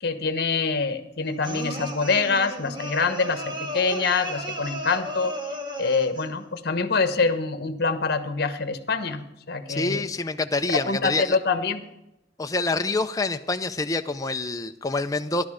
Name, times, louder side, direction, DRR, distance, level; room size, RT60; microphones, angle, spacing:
voice 1, 0.0-5.4 5.8-10.1 10.9-11.8, left 4 dB, 55° left, 9 dB, 1.2 m, -25 dB
sound 1, 1.4-6.3, equal, 25° right, 1.5 m, -34 dB
voice 2, 9.7-11.4 12.4-15.4, left 3 dB, 20° left, 7 dB, 0.5 m, -26 dB
16.0 x 11.5 x 5.0 m, 0.89 s
head